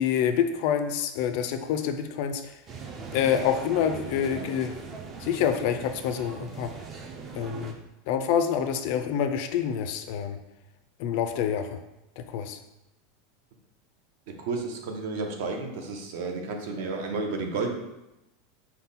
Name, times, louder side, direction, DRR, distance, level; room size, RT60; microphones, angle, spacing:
voice 1, 0.0-2.6 3.1-4.7 5.2-6.7 7.3-7.7 8.1-10.4 11.0-11.8 12.2-12.6, left 8 dB, 45° left, 7 dB, 0.3 m, -27 dB
sound 1, 2.7-7.7, right 4 dB, 20° right, 0.4 m, -40 dB
voice 2, 14.3-17.7, right 3 dB, 60° right, 3 dB, 0.7 m, -32 dB
5.4 x 2.1 x 4.0 m, 0.92 s
supercardioid pair, 175°, 0 cm